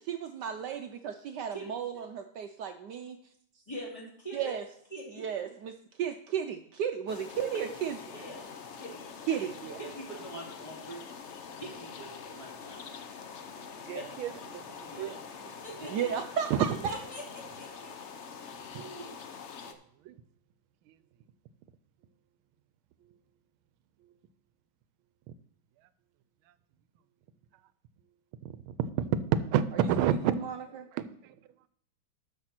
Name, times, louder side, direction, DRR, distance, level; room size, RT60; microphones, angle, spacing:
voice 1, 0.1-3.2 4.3-4.6 5.2-8.0 9.3-9.8 15.9-16.7 30.4-30.5, right 8 dB, 70° right, 6 dB, 1.1 m, -34 dB
voice 2, 3.7-4.6 4.9-5.2 8.1-8.5 8.8-9.1 9.8-11.0 11.6-12.9 13.9-14.4 14.9-15.2 15.6-15.9 16.9-17.9 18.7-19.2, right 1 dB, 15° left, -3 dB, 2.7 m, -43 dB
sound 1, 7.1-19.7, left 6 dB, 70° left, 0.6 m, -45 dB
voice 3, 13.8-15.2 16.5-16.7 18.7-18.9 19.7-19.8 20.0-20.2 20.9-21.0 23.0-23.2 24.0-24.1 25.3-25.4 26.5-26.6 28.4-31.4, right 9 dB, 90° right, 14 dB, 1.4 m, -31 dB
12.5 x 6.0 x 4.4 m, 0.68 s
omnidirectional pair, 2.2 m